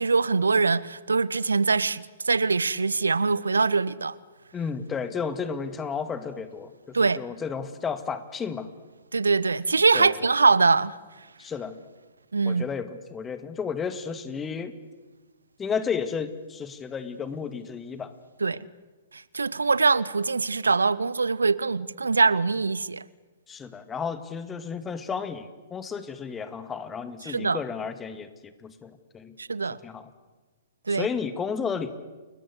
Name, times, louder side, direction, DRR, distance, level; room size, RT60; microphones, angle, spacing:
voice 1, 0.0-4.1 6.9-7.2 9.1-10.9 12.3-12.6 18.4-18.6 19.3-23.0 27.3-27.6 29.4-29.8 30.9-31.1, right 4 dB, 80° right, 0.8 m, -23 dB
voice 2, 4.5-8.7 9.9-10.2 11.4-11.8 12.4-14.7 15.6-18.1 18.5-18.6 23.5-29.4 29.8-30.1 30.9-31.9, left 6 dB, 15° left, 2.0 m, -32 dB
30.0 x 21.0 x 8.2 m
figure-of-eight pair, 115°, 0 cm